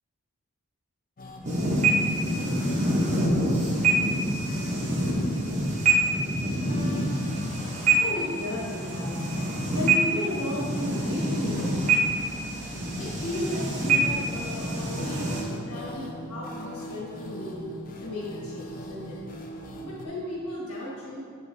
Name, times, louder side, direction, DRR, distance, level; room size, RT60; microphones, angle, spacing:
sound 1, 1.2-20.1, equal, 40° left, 0.5 m, -41 dB
sound 2, 1.4-15.4, right 2 dB, 35° right, 0.9 m, -26 dB
voice 1, 8.0-9.3 9.7-11.7 13.0-17.6 18.0-19.2 19.8-21.2, left 1 dB, 85° left, -7 dB, 1.5 m, -34 dB
7.7 x 5.0 x 2.6 m, 2.3 s
head